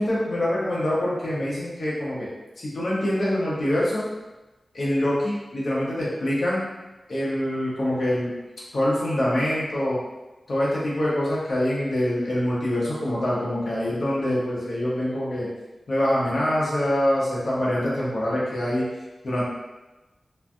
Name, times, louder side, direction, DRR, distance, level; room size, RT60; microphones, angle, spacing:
voice 1, 0.0-2.3 2.6-4.0 4.7-6.7 7.1-8.3 8.7-10.0 10.5-15.5 15.9-18.9 19.2-19.4, left 1 dB, 65° left, -7 dB, 0.9 m, -25 dB
3.2 x 2.5 x 2.2 m, 1.1 s
wide cardioid pair, 110°, 0 cm